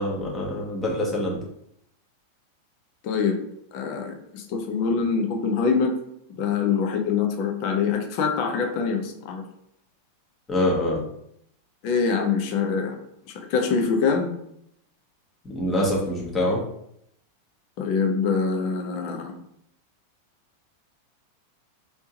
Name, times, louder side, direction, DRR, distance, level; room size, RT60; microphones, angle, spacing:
voice 1, 0.0-1.4 10.5-11.0 15.4-16.6, left 1 dB, 20° left, -3 dB, 1.1 m, -25 dB
voice 2, 3.0-3.4 3.7-5.9 6.4-9.4 11.8-13.0 13.3-14.3 17.8-19.3, left 5 dB, 45° left, 4 dB, 0.6 m, -24 dB
3.4 x 2.8 x 2.8 m, 0.73 s
figure-of-eight pair, 90°, 0 cm